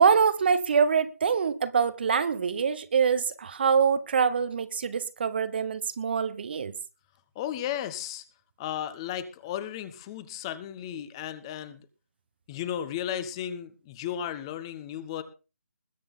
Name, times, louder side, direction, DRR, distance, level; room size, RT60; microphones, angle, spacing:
voice 1, 0.0-6.7, right 6 dB, 40° right, 0.9 m, -24 dB
voice 2, 7.3-8.2 8.6-11.9 12.5-15.2, left 10 dB, 20° left, 1.2 m, -34 dB
21.0 x 9.0 x 3.7 m
figure-of-eight pair, 155°, 9 cm